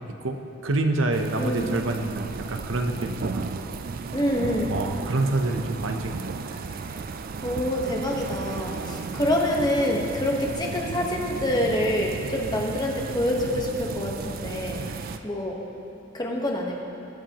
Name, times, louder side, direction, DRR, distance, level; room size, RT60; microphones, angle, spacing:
voice 1, 0.2-3.5 4.7-6.6 14.9-15.2, right 2 dB, 75° right, 5 dB, 0.8 m, -27 dB
sound 1, 1.1-15.2, right 4 dB, 45° right, 0.4 m, -34 dB
voice 2, 1.4-1.7 4.1-4.8 7.4-14.8 15.2-15.6 16.1-16.8, left 1 dB, 20° left, 0 dB, 1.2 m, -26 dB
22.0 x 7.7 x 3.0 m, 2.9 s
head